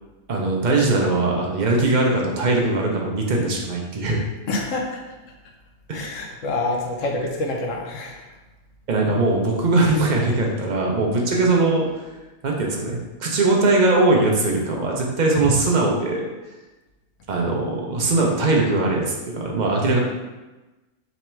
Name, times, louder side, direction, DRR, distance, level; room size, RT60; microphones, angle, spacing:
voice 1, 0.3-4.2 5.9-6.0 8.9-11.9 12.4-16.3 17.3-20.0, right 2 dB, 55° right, -1 dB, 0.5 m, -20 dB
voice 2, 4.5-4.9 5.9-8.2, left 2 dB, 65° left, 1 dB, 0.9 m, -26 dB
3.5 x 3.0 x 4.3 m, 1.1 s
omnidirectional pair, 1.5 m